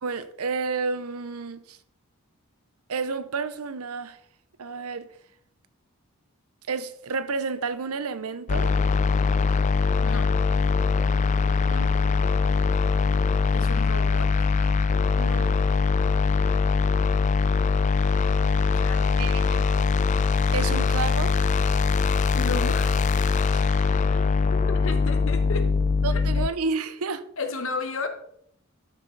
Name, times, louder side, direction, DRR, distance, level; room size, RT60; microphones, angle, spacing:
voice 1, 0.0-1.8 2.9-4.2 4.6-5.1 6.7-8.7 11.7-12.0 15.2-15.6 19.2-19.7 20.5-21.4 23.5-23.7 26.0-27.2, right 4 dB, 85° right, 0.7 m, -31 dB
sound 1, 8.5-26.5, left 4 dB, 35° left, 0.3 m, -22 dB
voice 2, 13.5-14.3 18.7-19.2 22.3-23.0 24.1-24.2 24.5-25.7 26.1-26.5 27.4-28.1, left 3 dB, 65° left, 1.2 m, -33 dB
13.0 x 5.5 x 3.9 m
head